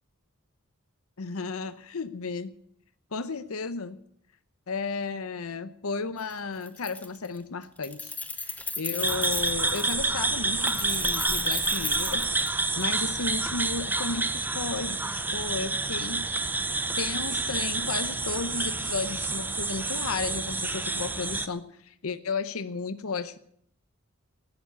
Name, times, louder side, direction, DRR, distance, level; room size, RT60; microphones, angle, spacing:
voice 1, 1.2-2.5 3.1-4.0 4.7-8.1 8.4-12.3 12.8-16.4 17.0-23.4, left 4 dB, 85° left, 13 dB, 0.8 m, -34 dB
Keys jangling, 6.2-6.3 6.6-7.4 7.6-10.0 10.6-12.9, left 3 dB, 5° left, 1.0 m, -36 dB
sound 1, 9.0-21.5, right 3 dB, 10° right, 0.6 m, -28 dB
18.5 x 7.4 x 9.6 m, 0.70 s
head